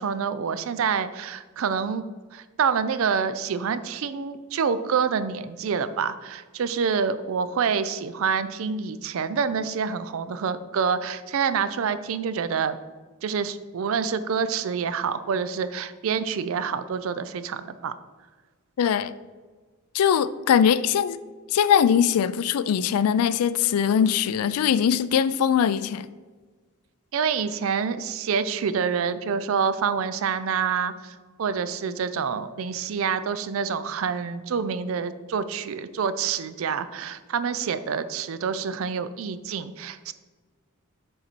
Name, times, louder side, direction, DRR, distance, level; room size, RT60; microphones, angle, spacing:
voice 1, 0.0-2.1 2.3-12.8 13.2-17.9 27.1-40.1, right 6 dB, 65° right, 0.4 m, -27 dB
voice 2, 18.8-19.1 19.9-21.2 21.5-26.1, left 8 dB, 85° left, 0.3 m, -21 dB
6.6 x 4.2 x 4.4 m
head